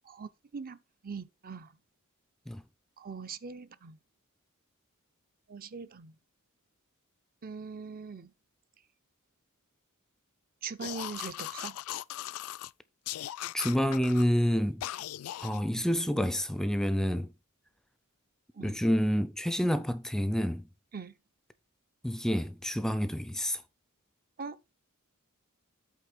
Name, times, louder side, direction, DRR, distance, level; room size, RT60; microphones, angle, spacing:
voice 1, 0.0-1.7 3.0-4.0 5.5-6.1 7.4-8.3 10.6-11.8 18.5-18.8 20.9-21.1 24.4-24.6, right 5 dB, 40° right, 0.6 m, -41 dB
sound 1, 10.8-12.7 13.1-14.3 14.8-15.6, left 13 dB, 75° left, 0.3 m, -39 dB
voice 2, 13.5-14.8 15.4-17.3 18.6-20.7 22.0-23.6, equal, ahead, 0.4 m, -28 dB
8.3 x 3.6 x 6.0 m
head